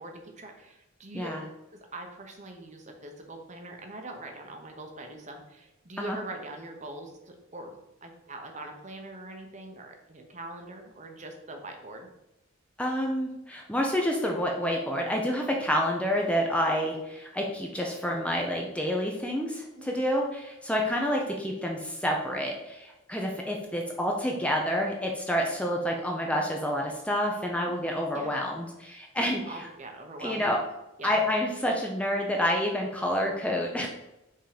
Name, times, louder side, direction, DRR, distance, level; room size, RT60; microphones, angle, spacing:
voice 1, 0.0-1.4 1.7-12.1 19.7-19.9 21.2-21.3 27.6-27.7 28.1-28.4 29.5-30.4 31.0-31.2, right 2 dB, 35° right, 3 dB, 0.9 m, -42 dB
voice 2, 12.8-29.7 30.2-30.6 31.0-33.9, equal, 5° left, 0 dB, 0.6 m, -28 dB
5.6 x 3.8 x 5.0 m, 0.92 s
head